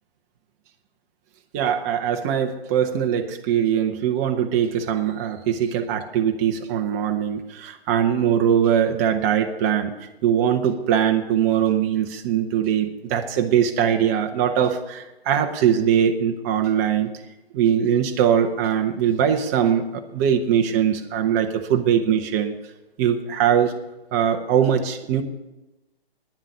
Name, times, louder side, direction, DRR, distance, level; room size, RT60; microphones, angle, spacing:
voice 1, 1.5-9.9 10.2-17.1 17.5-22.6 23.0-23.7 24.1-25.2, right 9 dB, 15° right, 5 dB, 0.7 m, -21 dB
10.0 x 7.4 x 9.4 m, 1.0 s
figure-of-eight pair, 135°, 30 cm